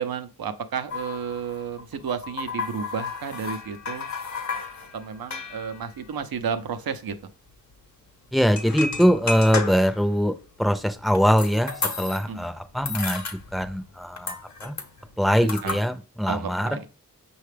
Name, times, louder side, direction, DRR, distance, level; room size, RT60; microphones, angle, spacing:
voice 1, 0.0-4.1 4.9-7.2 12.3-12.5 15.4-15.8 16.3-16.9, right 6 dB, 80° right, 10 dB, 0.6 m, -32 dB
sound 1, 0.9-6.9 7.2-7.3 7.5-7.7 8.4-10.1 10.6-12.4 12.7-13.9 14.2-15.8, left 4 dB, 50° left, 0.8 m, -33 dB
voice 2, 8.3-10.3 10.6-11.7 12.0-13.2 13.5-14.3 14.6-14.7 15.2-16.7, equal, ahead, 9 dB, 0.5 m, -22 dB
5.6 x 2.3 x 3.3 m, 0.34 s
cardioid pair, 50°, 35 cm